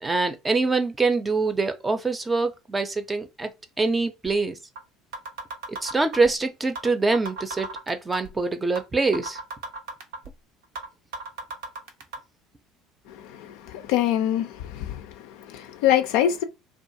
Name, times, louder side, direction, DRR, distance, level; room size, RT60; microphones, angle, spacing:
voice 1, 0.0-3.5 3.8-4.6 5.7-9.4, right 3 dB, 20° right, 0.5 m, -24 dB
sound 1, 4.3-4.4 4.8-4.9 5.1-6.3 6.8-6.9 7.1-8.3 8.8-8.9 9.1-10.3 10.8-10.9 11.1-12.2, right 3 dB, 75° right, 0.6 m, -34 dB
voice 2, 13.1-16.4, left 11 dB, 70° left, 0.4 m, -25 dB
2.4 x 2.3 x 2.7 m
hypercardioid pair, 65°, 0 cm